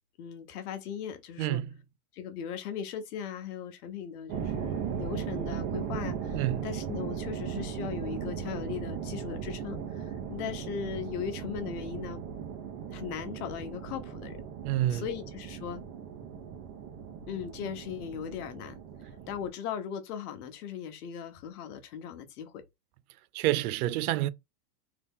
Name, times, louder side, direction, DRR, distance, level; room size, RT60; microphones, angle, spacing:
voice 1, 0.2-1.6 2.1-12.2 12.9-14.4 14.9-15.8 17.3-18.8 19.3-22.6, left 8 dB, 80° left, 0.9 m, -38 dB
voice 2, 1.4-1.7 6.3-6.7 14.6-15.0 23.3-24.3, right 14 dB, 75° right, 0.5 m, -28 dB
sound 1, 4.3-19.5, right 7 dB, 40° right, 0.8 m, -37 dB
2.8 x 2.7 x 3.5 m
supercardioid pair, 125°, 45 cm